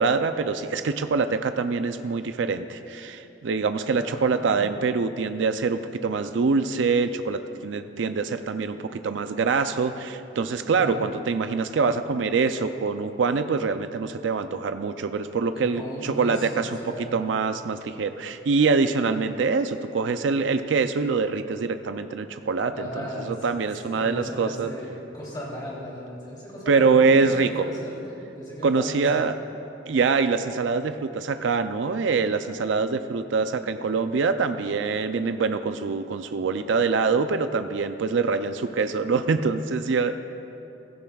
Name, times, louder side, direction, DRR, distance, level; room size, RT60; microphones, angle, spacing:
voice 1, 0.0-24.7 26.7-27.6 28.6-29.3 29.9-40.1, right 4 dB, 75° right, 9 dB, 0.4 m, -24 dB
voice 2, 4.0-4.8 10.8-11.0 15.5-17.2 22.7-23.5 23.8-29.5, equal, 20° left, -6 dB, 3.1 m, -37 dB
15.5 x 15.0 x 2.3 m, 2.8 s
head